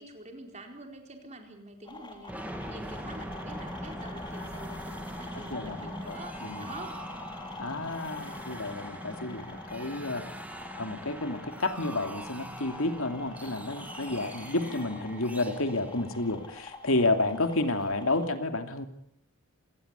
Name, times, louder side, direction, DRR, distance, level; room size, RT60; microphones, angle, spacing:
voice 1, 0.0-7.1 14.6-15.3 17.7-18.1, right 2 dB, 30° right, 4 dB, 4.5 m, -47 dB
sound 1, 1.8-18.3, left 3 dB, 20° left, 3.5 m, -45 dB
sound 2, 2.3-17.0, equal, 5° right, 2.2 m, -42 dB
voice 2, 5.3-6.7 7.6-10.2 10.8-18.9, left 2 dB, 80° left, 7 dB, 2.8 m, -31 dB
27.5 x 19.5 x 8.3 m, 0.69 s
head